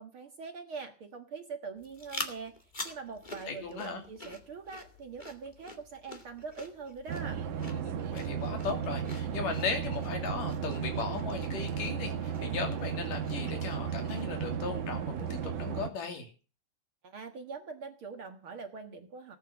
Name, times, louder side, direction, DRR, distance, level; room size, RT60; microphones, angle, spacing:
voice 1, 0.0-2.5 2.8-7.4 17.0-19.4, right 5 dB, 50° right, 6 dB, 2.0 m, -43 dB
sound 1, 1.8-14.5, left 2 dB, 15° left, 2.0 m, -47 dB
voice 2, 3.5-4.0 7.5-16.3, left 5 dB, 75° left, 5 dB, 4.3 m, -37 dB
sound 2, 7.1-15.9, right 8 dB, 70° right, 2.7 m, -34 dB
18.0 x 9.2 x 7.3 m, 0.36 s
omnidirectional pair, 3.8 m